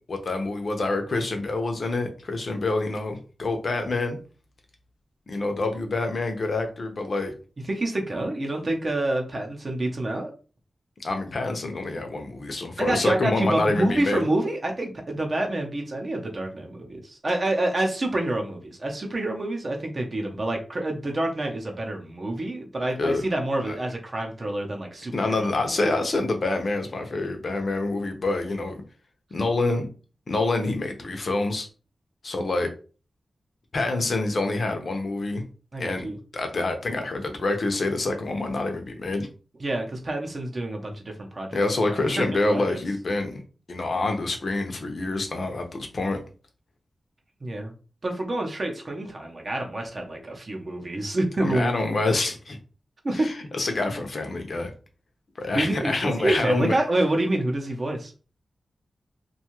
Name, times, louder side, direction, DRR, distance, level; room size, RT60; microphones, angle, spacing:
voice 1, 0.1-4.2 5.3-7.3 11.0-14.3 23.0-23.2 23.6-23.7 25.1-28.8 29.3-29.9 30.3-31.7 32.2-32.7 33.7-35.4 35.8-39.3 41.5-43.4 43.7-46.2 51.4-52.6 53.1-54.7 55.4-56.8, left 2 dB, 50° left, 5 dB, 0.6 m, -27 dB
voice 2, 7.7-10.3 12.8-25.5 25.8-25.9 35.7-36.2 39.6-41.6 41.9-42.8 47.4-47.7 48.0-51.7 53.0-53.3 55.5-58.1, right 1 dB, 35° right, 2 dB, 0.6 m, -27 dB
2.6 x 2.3 x 2.9 m, 0.36 s
wide cardioid pair, 150°, 0 cm